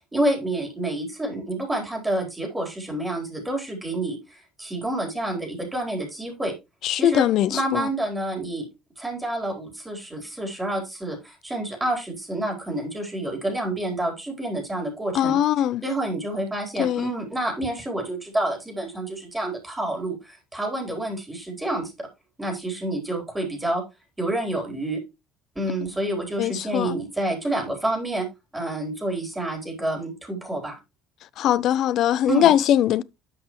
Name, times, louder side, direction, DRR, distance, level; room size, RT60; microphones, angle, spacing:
voice 1, 0.1-6.5 6.9-7.3 7.5-8.6 9.0-15.4 15.8-22.1 22.4-23.8 24.2-25.0 25.5-28.3 28.5-30.8 32.3-32.5, right 1 dB, 15° right, 4.3 m, -28 dB
voice 2, 6.8-7.9 15.1-15.8 16.8-17.1 26.4-26.9 31.4-33.0, left 11 dB, 55° left, 0.5 m, -21 dB
11.5 x 6.0 x 3.1 m
figure-of-eight pair, 55°, 0 cm